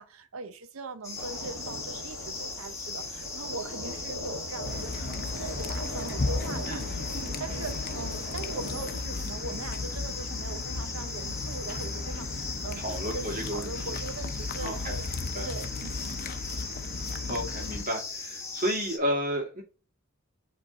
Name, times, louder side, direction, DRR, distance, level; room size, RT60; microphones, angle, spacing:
voice 1, 0.0-15.1 15.4-16.2, right 3 dB, 70° right, 0.8 m, -41 dB
sound 1, 1.0-19.0, left 4 dB, 15° left, 1.6 m, -38 dB
sound 2, 1.2-9.0, equal, 85° right, 1.5 m, -41 dB
sound 3, 4.6-17.9, left 3 dB, 45° left, 0.7 m, -35 dB
voice 2, 6.7-7.7 12.8-13.7 14.6-15.5 17.3-19.6, equal, 40° right, 2.4 m, -33 dB
7.8 x 3.4 x 4.1 m
head